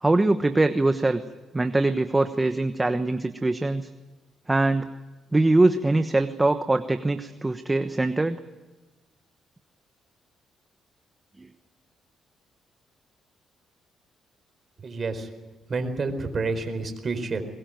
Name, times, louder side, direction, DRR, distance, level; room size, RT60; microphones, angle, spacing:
voice 1, 0.0-1.2 1.5-3.9 4.5-4.9 5.3-8.4, right 2 dB, 15° right, 9 dB, 1.1 m, -22 dB
voice 2, 14.8-15.3 15.7-17.4, right 3 dB, 40° right, 7 dB, 4.6 m, -29 dB
22.0 x 21.0 x 9.3 m, 1.2 s
cardioid pair, 90°, 0 cm